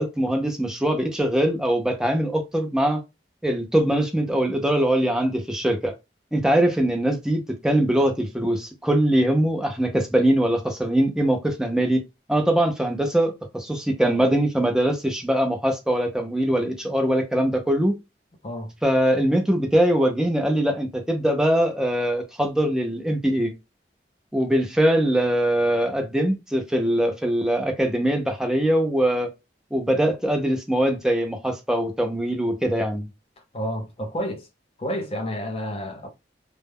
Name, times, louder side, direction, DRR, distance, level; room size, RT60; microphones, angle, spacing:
voice 1, 0.0-3.0 3.4-5.9 6.3-12.0 12.3-17.9 18.8-23.5 24.3-29.3 29.7-33.1, right 1 dB, 5° right, 0.5 m, -22 dB
voice 2, 33.5-34.5 34.8-36.1, equal, 35° left, 0.7 m, -30 dB
2.2 x 2.0 x 3.4 m
head